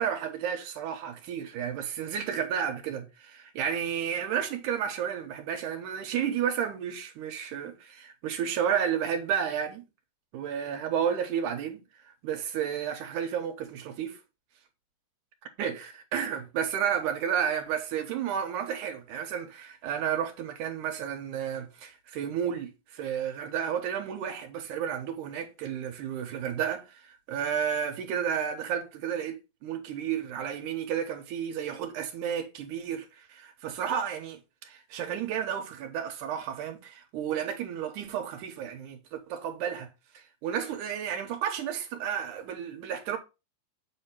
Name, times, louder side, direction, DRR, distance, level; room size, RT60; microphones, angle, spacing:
voice 1, 0.0-9.8 10.3-11.8 12.2-14.2 15.6-39.9 40.1-43.2, right 8 dB, 75° right, 2.5 m, -32 dB
7.5 x 2.8 x 5.7 m
omnidirectional pair, 3.7 m